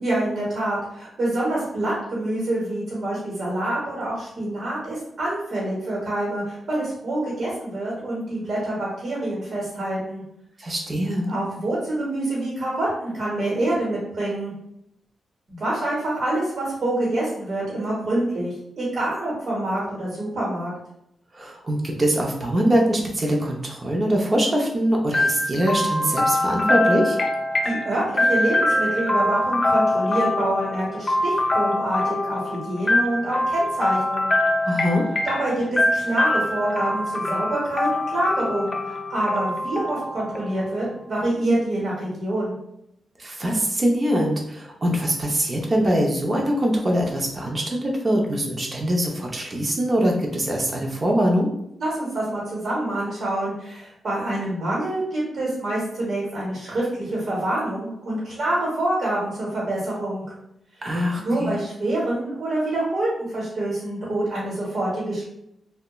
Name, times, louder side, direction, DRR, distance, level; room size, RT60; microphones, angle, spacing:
voice 1, 0.0-10.2 11.3-14.5 15.5-20.7 27.6-34.3 35.2-42.5 51.8-60.2 61.1-65.3, right 1 dB, 60° right, -6 dB, 1.0 m, -26 dB
voice 2, 10.6-11.3 21.3-27.2 34.6-35.0 43.2-51.5 60.8-61.5, equal, 35° right, 0 dB, 0.5 m, -23 dB
sound 1, 25.1-40.9, left 1 dB, 35° left, 0.4 m, -24 dB
2.8 x 2.1 x 2.2 m, 0.79 s
wide cardioid pair, 110°, 0 cm